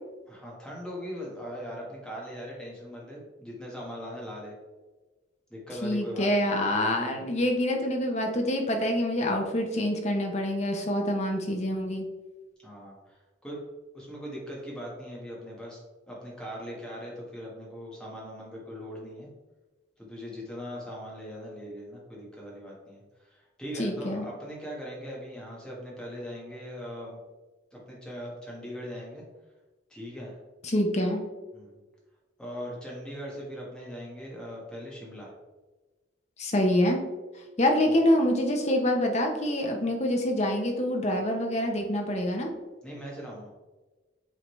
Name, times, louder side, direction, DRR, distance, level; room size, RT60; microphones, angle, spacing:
voice 1, 0.3-4.5 5.5-6.5 12.6-13.6 13.9-15.8 16.1-19.3 20.0-27.2 27.7-29.2 29.9-30.4 31.5-31.8 32.4-35.3 37.8-38.0 42.8-43.5, equal, 5° left, -5 dB, 1.5 m, -40 dB
voice 2, 5.8-12.1 23.8-24.2 30.6-31.2 36.4-37.0 37.6-42.5, left 1 dB, 35° left, 2 dB, 0.8 m, -26 dB
7.8 x 3.8 x 3.2 m, 1.2 s
head